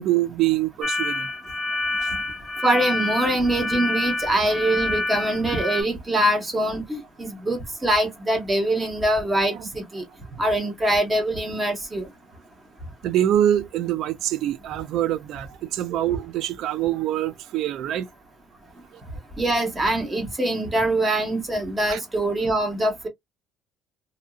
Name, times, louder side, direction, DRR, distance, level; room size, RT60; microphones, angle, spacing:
voice 1, 0.0-1.3 2.0-2.2 9.5-9.7 13.0-18.1 18.9-19.0 21.9-22.0, right 12 dB, 60° right, 0.4 m, -25 dB
sound 1, 0.8-5.8, left 2 dB, 20° left, 0.6 m, -27 dB
voice 2, 2.6-10.0 10.4-12.0 19.4-23.1, right 1 dB, 15° right, 1.0 m, -23 dB
2.7 x 2.6 x 2.3 m
cardioid pair, 165°, 0 cm